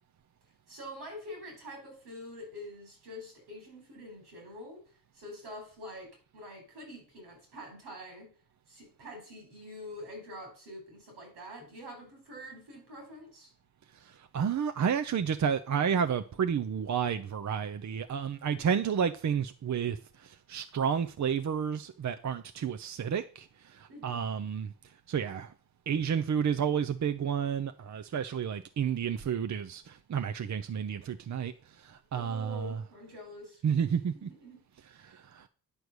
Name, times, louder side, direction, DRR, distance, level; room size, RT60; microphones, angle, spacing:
voice 1, 0.7-4.8 5.1-8.3 8.7-13.5 23.9-24.2 32.1-33.6 34.1-34.6 34.9-35.2, equal, 85° right, 4.2 m, -46 dB
voice 2, 14.3-24.7 25.1-25.5 25.9-31.5 31.8-32.7 33.6-34.3 35.0-35.5, right 7 dB, 45° right, 0.7 m, -31 dB
9.8 x 4.6 x 6.6 m
supercardioid pair, 45°, 39 cm